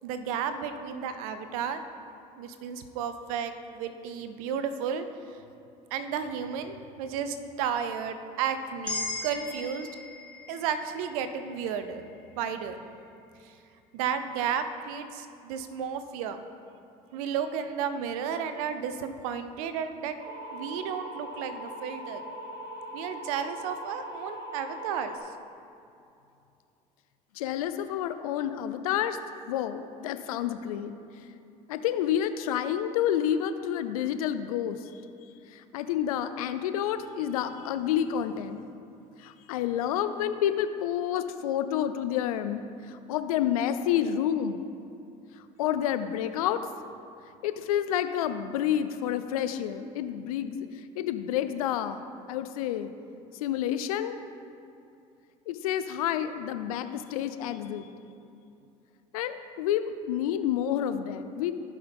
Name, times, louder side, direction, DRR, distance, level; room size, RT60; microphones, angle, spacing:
voice 1, 0.0-1.8 2.4-5.1 5.9-9.9 10.5-12.0 12.4-12.8 13.9-16.4 17.1-20.2 20.5-22.2 22.9-25.2, right 7 dB, 85° right, 10 dB, 0.6 m, -33 dB
sound 1, 8.9-13.1, left 2 dB, 5° left, 2.4 m, -39 dB
sound 2, 20.2-25.2, equal, 65° right, 1.5 m, -40 dB
voice 2, 27.3-29.2 29.5-31.0 31.7-34.9 35.5-38.6 39.2-44.6 45.6-46.6 47.4-50.7 51.0-52.9 53.4-54.2 55.5-57.9 59.1-61.5, left 10 dB, 90° left, 11 dB, 0.5 m, -29 dB
15.5 x 5.7 x 3.5 m, 2.7 s
hypercardioid pair, 65°, 18 cm